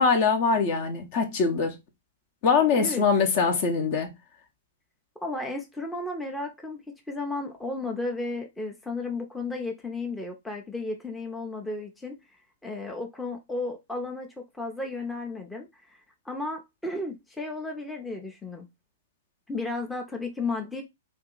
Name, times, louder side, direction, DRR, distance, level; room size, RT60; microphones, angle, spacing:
voice 1, 0.0-1.7 2.4-4.1, left 5 dB, 45° left, 0.8 m, -23 dB
voice 2, 2.7-3.0 5.2-6.8 7.1-12.2 12.6-16.0 16.3-18.7 19.5-20.8, left 2 dB, 5° left, 0.6 m, -33 dB
2.7 x 2.4 x 3.8 m
figure-of-eight pair, 110°, 0 cm